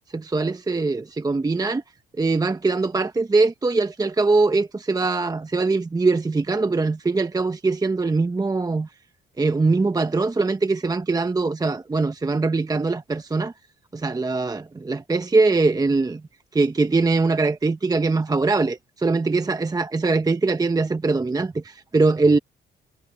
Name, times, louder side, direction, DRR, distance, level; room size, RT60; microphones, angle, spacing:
voice 1, 0.1-1.8 2.2-8.9 9.4-13.5 13.9-16.2 16.5-22.4, right 3 dB, 20° right, 0.9 m, -22 dB
cardioid pair, 90°, 20 cm